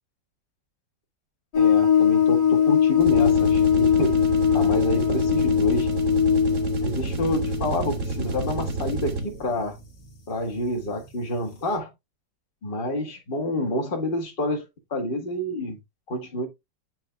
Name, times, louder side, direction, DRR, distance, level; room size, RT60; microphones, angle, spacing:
sound 1, 1.5-9.9 10.4-10.5 11.0-11.1, left 8 dB, 65° left, 2.1 m, -21 dB
voice 1, 1.6-4.2 4.5-5.9 6.8-9.8 10.3-11.9 12.6-14.7 14.9-15.8 16.1-16.5, left 1 dB, 30° left, 1.9 m, -28 dB
sound 2, 3.0-9.5, right 3 dB, 50° right, 1.4 m, -30 dB
9.4 x 3.5 x 3.4 m
omnidirectional pair, 1.9 m